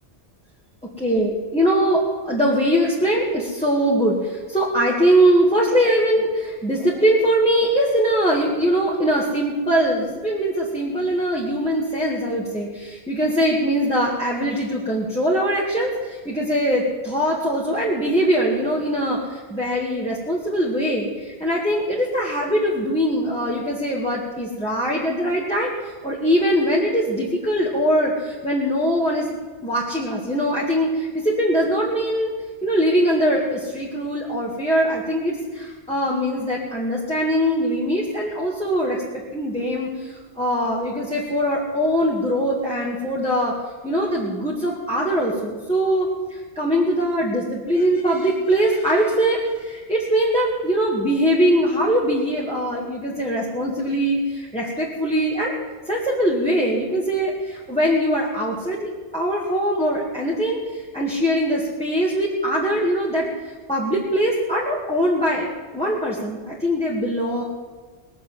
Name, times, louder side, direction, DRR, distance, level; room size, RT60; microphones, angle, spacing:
voice 1, 1.0-15.9 16.3-19.2 19.5-25.7 26.0-29.3 29.6-32.3 32.6-39.0 39.3-39.9 40.4-43.5 43.8-46.1 46.6-55.5 55.9-60.6 60.9-63.3 63.7-65.5 65.7-67.4, equal, 5° left, -5 dB, 2.0 m, -22 dB
20.0 x 7.3 x 7.3 m, 1.4 s
omnidirectional pair, 1.2 m